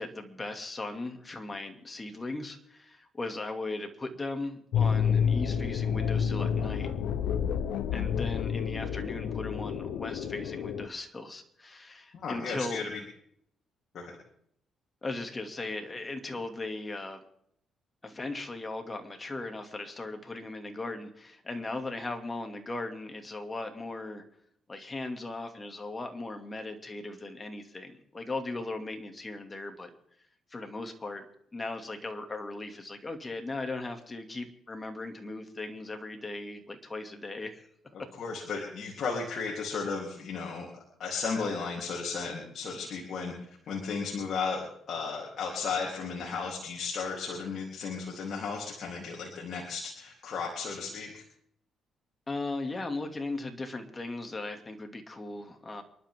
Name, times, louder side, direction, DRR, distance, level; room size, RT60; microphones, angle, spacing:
voice 1, 0.0-6.9 7.9-12.8 15.0-17.2 18.0-24.2 24.7-29.9 30.5-31.3 31.5-37.7 52.3-55.8, left 2 dB, 25° left, 5 dB, 2.6 m, -38 dB
sound 1, 4.7-10.9, left 7 dB, 85° left, 1.0 m, -29 dB
voice 2, 12.1-13.0 13.9-14.1 38.2-43.3 43.7-51.2, left 5 dB, 60° left, -2 dB, 3.6 m, -34 dB
28.0 x 11.5 x 3.8 m, 0.70 s
cardioid pair, 90°, 0 cm